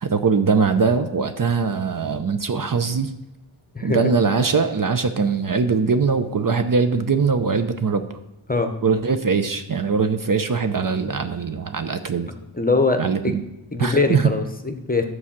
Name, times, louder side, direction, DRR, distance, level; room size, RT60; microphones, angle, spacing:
voice 1, 0.0-3.1 3.8-8.1 8.8-12.3 13.0-13.4 13.8-14.3, right 5 dB, 45° right, 9 dB, 0.7 m, -21 dB
voice 2, 12.6-13.4 13.7-15.1, left 3 dB, 20° left, 6 dB, 0.8 m, -22 dB
11.5 x 4.8 x 7.3 m, 0.92 s
wide cardioid pair, 110°, 48 cm